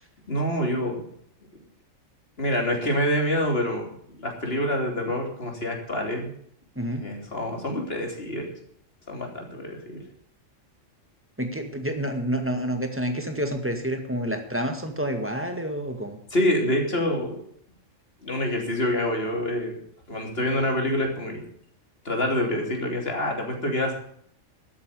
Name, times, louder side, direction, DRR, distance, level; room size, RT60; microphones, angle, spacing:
voice 1, 0.3-1.0 2.4-6.3 7.0-8.5 9.1-10.0 16.3-17.4 18.2-19.8 20.1-21.4 22.1-23.9, left 1 dB, 50° left, 2 dB, 3.4 m, -26 dB
voice 2, 6.8-7.1 11.4-16.2, equal, 10° right, 5 dB, 1.9 m, -28 dB
13.0 x 8.7 x 7.0 m, 0.64 s
omnidirectional pair, 1.3 m